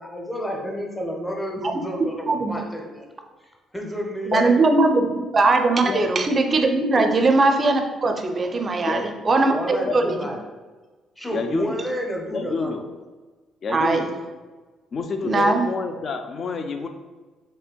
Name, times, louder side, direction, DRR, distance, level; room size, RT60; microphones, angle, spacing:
voice 1, 0.0-3.1 3.4-4.5 9.5-10.4 11.2-12.7, equal, 5° left, 0 dB, 0.7 m, -30 dB
voice 2, 2.3-2.6 4.3-10.2 13.7-14.0 15.2-15.6, right 3 dB, 35° right, 4 dB, 0.4 m, -20 dB
voice 3, 11.3-11.8 12.3-12.8 13.6-14.2 14.9-16.9, left 4 dB, 50° left, 6 dB, 0.4 m, -28 dB
4.2 x 3.2 x 2.2 m, 1.3 s
cardioid pair, 85°, 0 cm